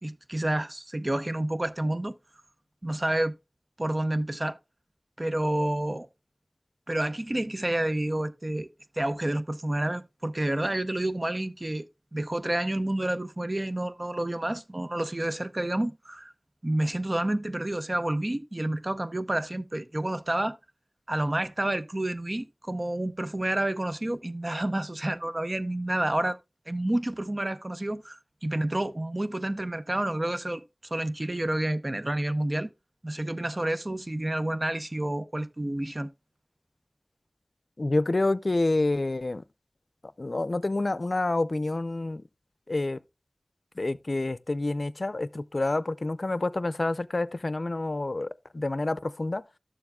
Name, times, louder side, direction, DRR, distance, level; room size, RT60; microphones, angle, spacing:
voice 1, 0.0-2.2 2.8-3.3 3.8-4.6 5.2-6.1 6.9-8.7 9.0-11.9 12.1-16.3 16.6-20.6 21.1-26.4 26.7-30.6 30.9-32.7 33.0-36.1, right 1 dB, 45° right, 0.7 m, -29 dB
voice 2, 37.8-39.4 40.0-42.2 42.7-43.0 43.8-49.4, left 2 dB, 75° left, 0.4 m, -28 dB
12.5 x 7.1 x 2.3 m
wide cardioid pair, 45°, 0 cm